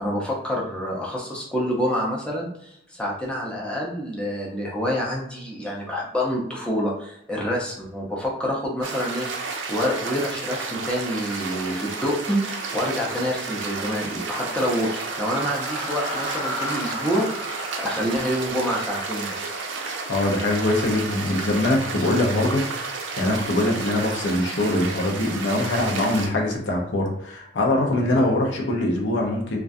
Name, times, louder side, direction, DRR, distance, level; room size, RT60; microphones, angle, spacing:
voice 1, 0.0-12.4 12.7-19.6 28.1-28.2, equal, 5° left, -4 dB, 0.5 m, -27 dB
sound 1, 8.8-26.3, right 4 dB, 85° right, 0.4 m, -32 dB
sound 2, 14.3-20.4, left 1 dB, 35° left, 0.8 m, -36 dB
voice 2, 20.1-29.6, left 1 dB, 75° left, 0 dB, 0.6 m, -23 dB
2.3 x 2.2 x 2.5 m, 0.73 s
head